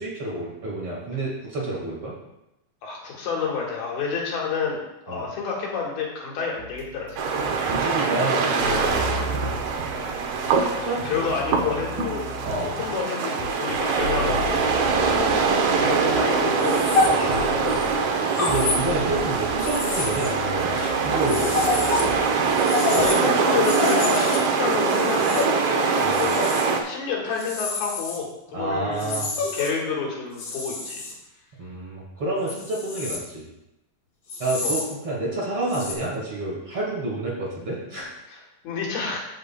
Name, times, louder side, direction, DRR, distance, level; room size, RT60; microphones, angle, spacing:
voice 1, 0.0-2.2 5.1-5.3 7.5-9.5 10.8-11.2 11.6-11.8 12.4-12.7 14.9-15.2 17.0-17.4 18.4-21.9 26.0-26.2 28.5-29.3 31.6-33.5 34.4-38.1, right 2 dB, 45° right, -5 dB, 2.3 m, -29 dB
voice 2, 2.8-4.8 5.1-7.7 10.6-12.3 12.6-14.7 15.1-17.8 22.4-26.5 26.8-31.0 34.6-34.8 38.3-39.2, left 5 dB, 80° left, -2 dB, 3.5 m, -30 dB
sound 1, 6.6-23.1, right 1 dB, 65° right, 2.6 m, -36 dB
sound 2, 7.2-26.8, right 5 dB, 85° right, 1.5 m, -23 dB
sound 3, 16.6-17.8 18.3-19.2 19.6-22.1 22.3-26.7 27.4-28.2 29.0-29.7 30.4-31.1 32.5-33.2 34.3-34.9 35.7-35.9, left 3 dB, 60° left, 1.2 m, -28 dB
14.0 x 6.6 x 2.3 m, 0.90 s
omnidirectional pair, 4.3 m